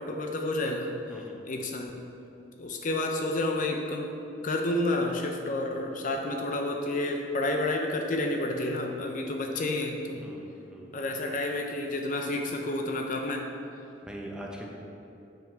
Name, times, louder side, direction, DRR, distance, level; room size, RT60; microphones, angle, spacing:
voice 1, 0.0-1.0 1.5-2.0 2.6-4.1 4.4-10.3 10.9-13.5, left 2 dB, 45° left, 3 dB, 0.5 m, -30 dB
voice 2, 10.2-10.9 14.0-14.7, right 1 dB, 5° right, -1 dB, 0.9 m, -42 dB
7.3 x 6.1 x 4.5 m, 2.9 s
head